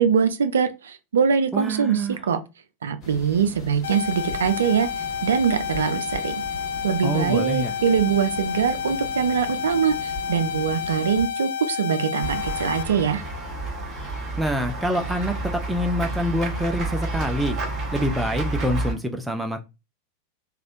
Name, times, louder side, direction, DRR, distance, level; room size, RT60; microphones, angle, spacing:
voice 1, 0.0-2.4 2.8-6.4 6.8-13.2, right 7 dB, 65° right, 0.4 m, -23 dB
voice 2, 1.5-2.2 7.0-7.7 14.4-17.6 17.9-19.6, equal, 5° right, 0.4 m, -26 dB
sound 1, 3.0-11.3, left 1 dB, 30° left, 1.5 m, -40 dB
sound 2, 3.8-12.8, left 7 dB, 65° left, 0.3 m, -30 dB
Run / Walk footsteps / Bell, 12.2-18.9, right 2 dB, 25° right, 1.3 m, -30 dB
3.3 x 2.4 x 2.5 m
figure-of-eight pair, 90°, 0 cm